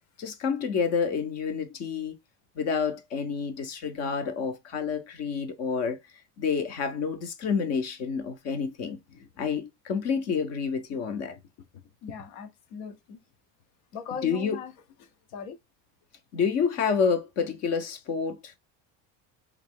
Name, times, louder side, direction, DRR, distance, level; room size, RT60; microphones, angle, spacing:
voice 1, 0.2-2.1 2.6-6.0 6.4-9.0 9.4-11.4 14.2-14.6 16.3-18.6, left 6 dB, 35° left, 0.5 m, -28 dB
voice 2, 12.0-13.2 13.9-14.7 15.3-15.6, left 7 dB, 75° left, 0.9 m, -39 dB
3.5 x 2.7 x 3.5 m
cardioid pair, 180°, 44 cm